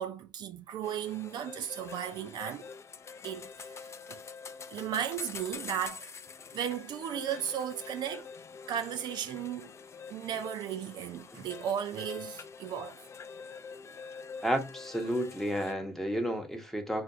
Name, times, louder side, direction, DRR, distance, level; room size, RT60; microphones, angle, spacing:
voice 1, 0.0-2.7 3.2-3.8 4.1-4.2 4.7-6.1 6.5-8.3 8.7-9.7 10.1-13.0, right 9 dB, 60° right, 0.4 m, -35 dB
sound 1, 0.8-15.7, left 5 dB, 35° left, 0.4 m, -46 dB
voice 2, 14.4-17.0, equal, 5° left, 0.8 m, -31 dB
2.5 x 2.2 x 2.5 m
hypercardioid pair, 60°, 8 cm